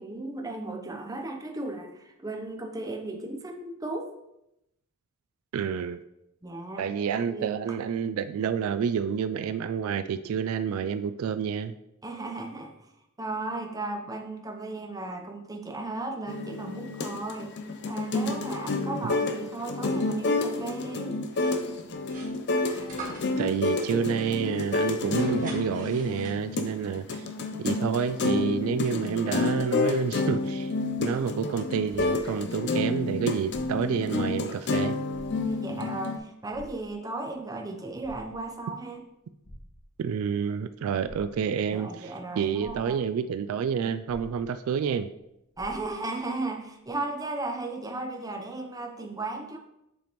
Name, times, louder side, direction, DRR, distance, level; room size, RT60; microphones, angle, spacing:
voice 1, 0.0-4.1 6.4-6.9 7.2-7.8 12.0-12.9 13.2-17.5 17.9-21.2 35.3-39.0 41.7-43.1 45.6-49.6, right 2 dB, 15° right, 3 dB, 0.7 m, -35 dB
voice 2, 5.5-6.0 6.8-11.7 19.0-19.1 23.4-27.3 27.6-30.7 31.0-34.9 40.0-42.1 42.4-45.1, right 7 dB, 70° right, 12 dB, 0.3 m, -29 dB
sound 1, 16.3-36.2, left 3 dB, 55° left, 0.6 m, -29 dB
sound 2, 21.3-26.7, right 3 dB, 40° right, 1.5 m, -44 dB
sound 3, 32.1-32.8 33.4-34.1 34.5-34.6 35.1-35.8 36.5-37.3 37.8-38.7 39.4-40.2 41.0-41.7 42.2-42.3 42.6-43.3 44.1-44.9 45.1-45.2 45.5-46.2 46.9-47.0, equal, 80° left, 2.0 m, -49 dB
7.6 x 5.1 x 3.0 m, 0.86 s
head